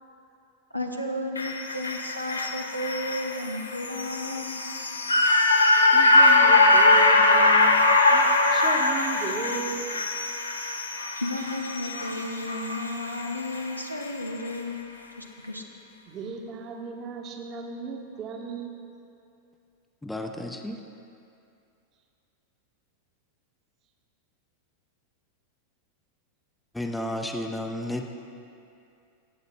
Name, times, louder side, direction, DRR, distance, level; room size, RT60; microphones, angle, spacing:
voice 1, 0.7-4.6 11.2-14.8 15.2-15.6, left 1 dB, 90° right, 2 dB, 0.6 m, -33 dB
sound 1, 1.4-13.7 14.0-14.1, left 2 dB, 80° left, 0.6 m, -22 dB
voice 2, 5.9-9.9 16.1-18.8, right 5 dB, 35° right, 2 dB, 0.9 m, -36 dB
voice 3, 20.0-20.8 26.7-28.1, left 1 dB, 5° left, 4 dB, 0.5 m, -32 dB
15.0 x 8.0 x 2.2 m, 2.6 s
figure-of-eight pair, 90°, 0 cm